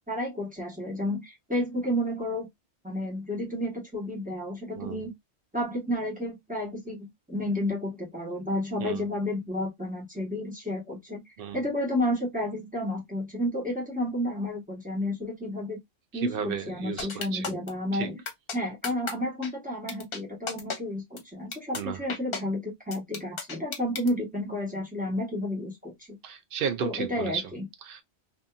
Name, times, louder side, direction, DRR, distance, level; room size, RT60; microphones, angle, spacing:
voice 1, 0.1-2.5 2.8-5.1 5.5-11.2 11.5-15.8 16.1-18.2 18.5-26.2 26.8-27.7, left 1 dB, 10° right, 1.1 m, -31 dB
voice 2, 16.2-17.1 17.3-17.5 17.9-18.1 21.7-22.0 26.2-27.4 27.8-28.0, right 8 dB, 65° right, 0.8 m, -33 dB
sound 1, 17.0-17.7 18.3-18.6 18.8-19.1 19.4-19.5 19.9-20.2 20.5-20.8 21.2-21.3 21.5-21.8 22.1-22.4 22.9-24.1, left 5 dB, 65° left, 1.0 m, -33 dB
2.7 x 2.6 x 2.3 m
omnidirectional pair, 1.1 m